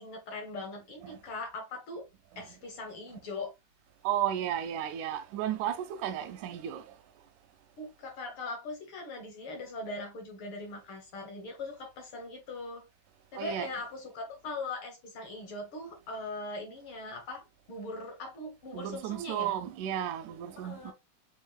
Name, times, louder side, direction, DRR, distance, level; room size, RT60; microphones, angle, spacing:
voice 1, 0.0-2.0 2.4-3.5 7.8-12.8 13.3-19.5 20.6-20.9, left 2 dB, 65° left, 1.4 m, -40 dB
voice 2, 4.0-6.8 13.4-13.7 18.7-20.9, right 11 dB, 80° right, 2.0 m, -33 dB
7.2 x 2.5 x 2.3 m
omnidirectional pair, 3.6 m